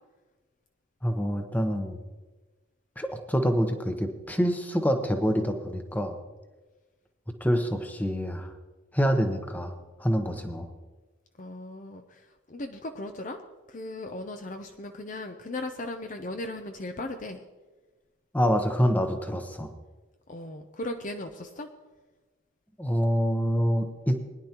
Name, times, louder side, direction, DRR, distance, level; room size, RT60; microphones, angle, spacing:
voice 1, 1.0-2.0 3.0-6.1 7.4-8.5 8.9-9.7 10.0-10.7 18.3-19.7 22.8-24.1, equal, 10° left, 5 dB, 0.9 m, -26 dB
voice 2, 11.4-13.4 13.7-17.4 20.3-21.7, left 2 dB, 40° left, 6 dB, 0.6 m, -37 dB
20.5 x 10.5 x 2.9 m, 1.2 s
head